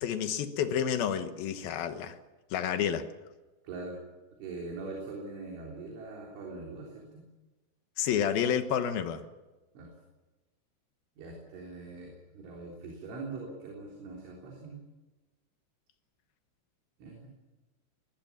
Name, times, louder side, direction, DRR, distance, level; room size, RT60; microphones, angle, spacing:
voice 1, 0.0-2.2 2.5-3.1 8.0-9.2, left 8 dB, 70° left, 2.4 m, -30 dB
voice 2, 3.6-4.0 4.4-7.2 9.8-9.9 11.2-14.8 17.0-17.3, right 3 dB, 70° right, 6.0 m, -42 dB
21.0 x 21.0 x 7.4 m
omnidirectional pair, 5.8 m